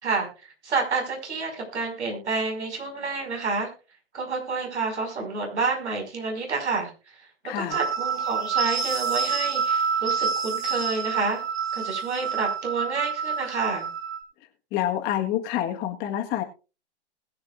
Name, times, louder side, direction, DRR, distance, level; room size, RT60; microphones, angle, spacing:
voice 1, 0.0-3.7 4.1-6.9 7.5-11.4 11.7-13.9, right 4 dB, 80° right, 3 dB, 5.6 m, -29 dB
voice 2, 7.4-7.8 14.7-16.4, left 11 dB, 30° left, 3 dB, 1.5 m, -27 dB
sound 1, 7.7-14.2, right 6 dB, 60° right, 2.2 m, -27 dB
20.5 x 8.1 x 2.5 m, 0.32 s
hypercardioid pair, 130°, 34 cm